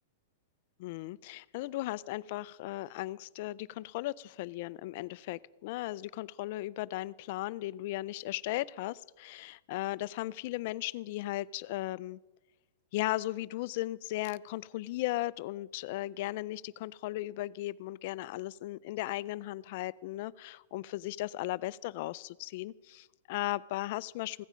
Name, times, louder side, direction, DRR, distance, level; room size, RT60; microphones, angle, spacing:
voice 1, 0.8-12.2 12.9-24.4, left 17 dB, 50° left, 19 dB, 0.4 m, -36 dB
16.0 x 14.5 x 5.1 m, 1.1 s
supercardioid pair, 155°, 0 cm